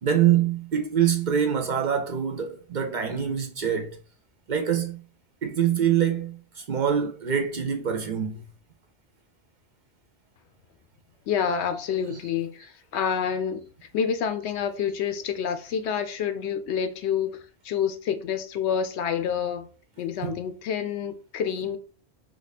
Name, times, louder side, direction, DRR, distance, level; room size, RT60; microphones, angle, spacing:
voice 1, 0.0-4.0 4.5-5.0 5.4-8.4 20.2-20.3, right 9 dB, 55° right, 0.6 m, -25 dB
voice 2, 11.3-13.7 13.9-19.7 20.0-21.8, left 7 dB, 85° left, 0.8 m, -28 dB
2.9 x 2.3 x 4.0 m
omnidirectional pair, 1.1 m